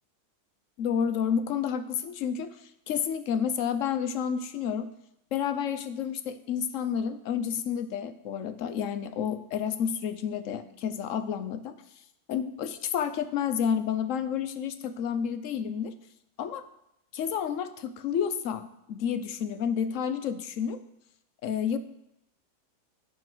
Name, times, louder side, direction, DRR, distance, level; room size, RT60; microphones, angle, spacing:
voice 1, 0.8-2.5 2.9-4.9 5.3-11.7 12.3-15.9 16.4-16.6 17.1-20.8 21.4-21.8, left 8 dB, 60° left, 11 dB, 1.0 m, -30 dB
10.5 x 4.7 x 7.7 m, 0.80 s
omnidirectional pair, 1.7 m